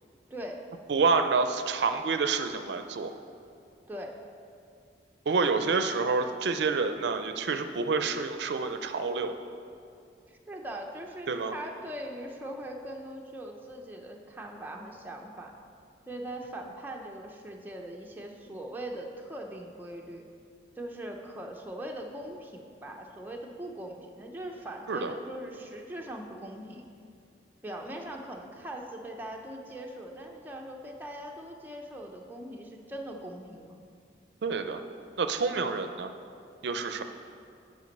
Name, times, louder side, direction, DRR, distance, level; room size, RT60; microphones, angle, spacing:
voice 1, 0.3-0.6 3.9-4.2 10.3-15.5 16.1-20.2 20.8-26.9 27.6-33.8, right 1 dB, 10° right, 0 dB, 0.6 m, -41 dB
voice 2, 0.9-3.1 5.3-9.4 11.3-11.5 24.9-25.1 34.4-34.8 35.2-36.1 36.6-37.0, right 4 dB, 75° right, 8 dB, 0.4 m, -28 dB
9.5 x 5.1 x 5.3 m, 2.4 s
head